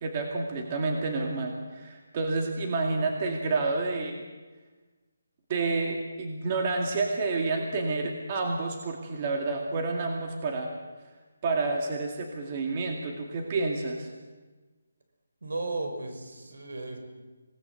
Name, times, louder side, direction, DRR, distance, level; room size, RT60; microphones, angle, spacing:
voice 1, 0.0-4.2 5.5-10.7 11.4-14.1, right 3 dB, 25° right, 1 dB, 2.2 m, -29 dB
voice 2, 15.4-17.0, right 2 dB, 70° right, 5 dB, 5.9 m, -35 dB
27.0 x 18.5 x 7.8 m, 1.3 s
hypercardioid pair, 175°, 0 cm